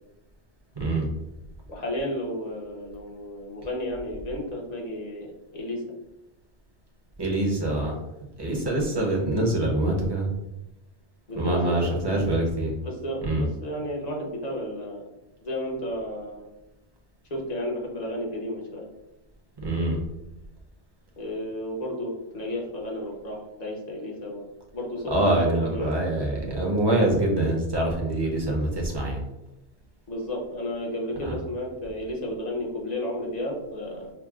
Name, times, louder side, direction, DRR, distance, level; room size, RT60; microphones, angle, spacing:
voice 1, 0.7-1.1 7.2-8.0 8.4-10.3 11.4-12.7 13.2-13.5 19.6-20.0 25.1-29.2 31.2-31.4, right 1 dB, 25° right, -2 dB, 0.7 m, -25 dB
voice 2, 1.7-5.3 5.5-5.8 11.3-12.2 12.8-15.1 15.4-16.4 17.3-18.9 21.2-24.5 24.7-26.1 30.1-34.1, left 1 dB, 40° left, -2 dB, 0.9 m, -32 dB
5.8 x 2.1 x 2.3 m, 0.92 s
omnidirectional pair, 1.1 m